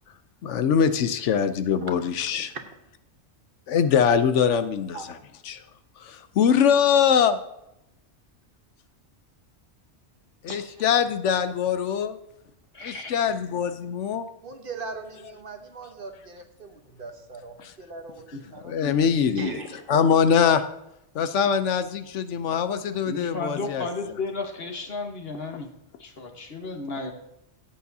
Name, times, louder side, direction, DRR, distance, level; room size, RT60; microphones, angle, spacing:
voice 1, 0.4-2.5 3.7-5.0 5.5-5.6 6.0-7.4 10.4-12.2 12.8-14.3 17.6-17.7 18.6-19.6 19.9-20.6 21.1-23.9, left 7 dB, 85° left, 11 dB, 1.0 m, -22 dB
voice 2, 12.7-13.2 18.3-18.4 23.1-25.7 26.0-27.1, left 3 dB, 55° left, 3 dB, 1.5 m, -33 dB
voice 3, 14.4-18.8 19.4-19.9, right 4 dB, 50° right, 5 dB, 1.2 m, -39 dB
14.5 x 8.5 x 2.7 m, 0.84 s
omnidirectional pair, 1.2 m